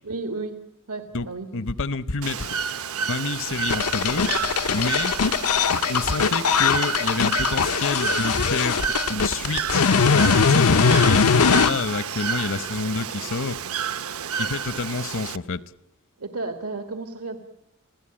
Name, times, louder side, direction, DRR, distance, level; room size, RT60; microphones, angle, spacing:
voice 1, 0.0-0.6 0.9-1.5 16.2-17.4, right 3 dB, 85° right, 7 dB, 1.7 m, -32 dB
voice 2, 1.5-2.6 3.0-4.2 4.7-5.1 5.9-13.6 14.4-15.6, left 3 dB, 60° left, 16 dB, 0.9 m, -28 dB
Bird / Water, 2.2-15.4, right 6 dB, 70° right, 0.8 m, -30 dB
sound 1, 3.7-11.7, left 5 dB, 90° left, 0.8 m, -20 dB
28.5 x 17.0 x 8.8 m, 0.88 s
head